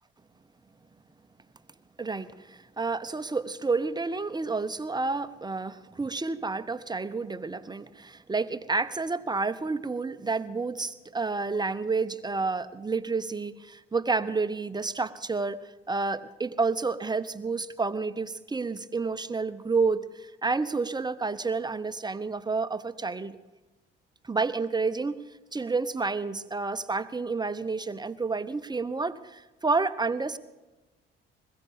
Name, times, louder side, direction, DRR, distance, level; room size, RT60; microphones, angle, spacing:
voice 1, 2.0-23.4 24.2-25.2 25.5-30.4, right 4 dB, 15° right, 12 dB, 0.8 m, -30 dB
21.0 x 15.0 x 3.6 m, 1.1 s
figure-of-eight pair, 45°, 30 cm